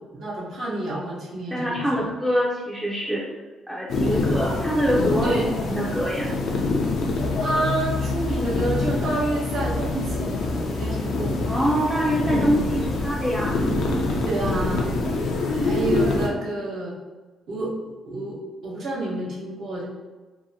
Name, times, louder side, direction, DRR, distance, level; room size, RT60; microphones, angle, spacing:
voice 1, 0.1-2.1 4.1-4.3 5.2-5.5 7.1-11.5 14.2-17.0 17.5-19.9, right 2 dB, 70° right, -5 dB, 0.9 m, -29 dB
voice 2, 1.5-3.3 3.7-6.3 11.5-13.6, equal, 10° right, -6 dB, 0.5 m, -24 dB
sound 1, 3.9-16.3, left 3 dB, 75° left, 0.4 m, -25 dB
2.7 x 2.1 x 2.7 m, 1.3 s
cardioid pair, 90°, 0 cm